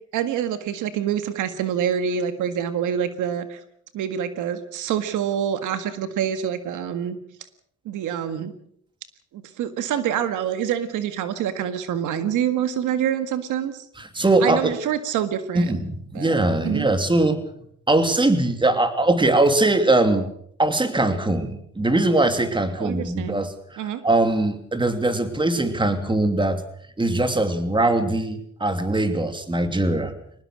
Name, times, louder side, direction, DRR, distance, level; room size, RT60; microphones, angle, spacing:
voice 1, 0.1-3.6 3.9-7.2 7.9-8.5 9.3-13.9 14.4-15.7 16.1-16.3 16.6-16.9 22.8-23.5 23.8-24.0, right 9 dB, 85° right, 10 dB, 1.9 m, -26 dB
voice 2, 14.0-14.7 15.5-17.4 17.9-20.3 20.6-26.6 27.0-30.1, right 2 dB, 15° right, 8 dB, 3.0 m, -21 dB
23.5 x 19.5 x 6.3 m, 0.67 s
cardioid pair, 90°, 30 cm